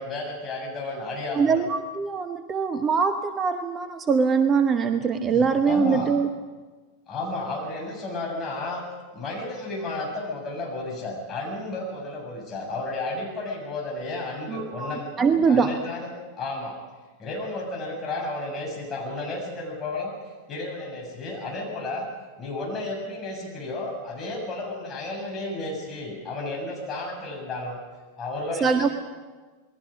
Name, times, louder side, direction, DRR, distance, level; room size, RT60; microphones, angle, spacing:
voice 1, 0.0-1.7 5.1-6.1 7.1-8.9 9.1-16.1 16.4-16.8 17.2-20.1 20.5-22.1 22.4-27.8 28.2-28.9, left 2 dB, 25° left, 0 dB, 7.6 m, -32 dB
voice 2, 1.3-6.3 14.5-15.7 28.6-28.9, right 5 dB, 20° right, 9 dB, 1.0 m, -23 dB
28.0 x 21.0 x 5.3 m, 1.4 s
figure-of-eight pair, 90°, 0 cm